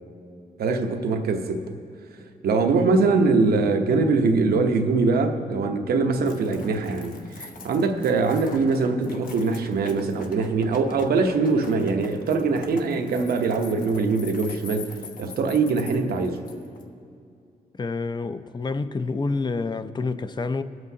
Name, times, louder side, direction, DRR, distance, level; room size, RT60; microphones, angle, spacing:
voice 1, 0.6-1.8 2.4-16.4, right 4 dB, 85° right, 0.9 m, -23 dB
sound 1, 6.3-16.8, left 4 dB, 65° left, 1.0 m, -43 dB
voice 2, 17.7-20.6, left 3 dB, 30° left, 0.5 m, -28 dB
22.5 x 7.9 x 2.8 m
cardioid pair, 75°, 16 cm